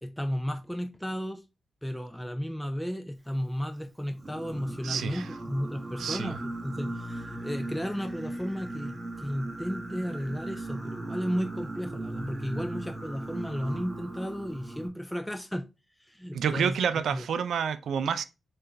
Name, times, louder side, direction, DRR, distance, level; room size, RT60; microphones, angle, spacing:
voice 1, 0.0-1.4 1.8-15.7 16.0-17.2, equal, 5° left, 0.4 m, -34 dB
Singing, 4.2-14.9, right 2 dB, 25° right, 1.0 m, -38 dB
voice 2, 4.8-5.2 6.0-6.4 16.3-18.2, right 7 dB, 90° right, 0.4 m, -29 dB
5.8 x 2.5 x 3.2 m
wide cardioid pair, 110°, 0 cm